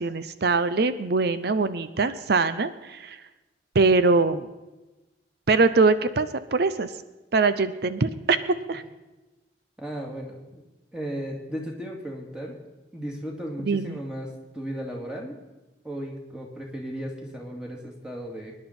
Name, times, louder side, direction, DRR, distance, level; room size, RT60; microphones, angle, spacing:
voice 1, 0.0-3.2 3.7-4.5 5.5-6.9 7.3-8.8 13.6-14.0, right 3 dB, 60° right, 12 dB, 0.6 m, -23 dB
voice 2, 9.8-10.6 10.9-12.6 12.9-15.4 15.8-18.5, equal, 5° right, -1 dB, 2.4 m, -35 dB
23.5 x 10.5 x 4.3 m, 1.1 s
head